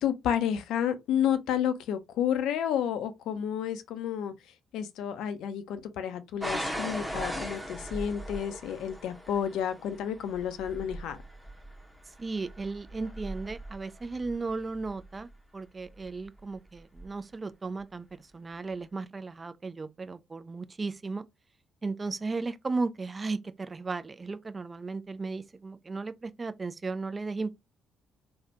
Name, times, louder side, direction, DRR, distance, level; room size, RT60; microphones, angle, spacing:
voice 1, 0.0-4.3 4.7-11.2, left 9 dB, 65° left, 0.4 m, -30 dB
sound 1, 6.4-15.2 16.0-16.4 17.0-17.1, equal, 5° right, 0.9 m, -39 dB
voice 2, 12.1-21.3 21.8-27.5, right 3 dB, 30° right, 0.4 m, -35 dB
3.2 x 2.1 x 2.8 m
figure-of-eight pair, 45°, 0 cm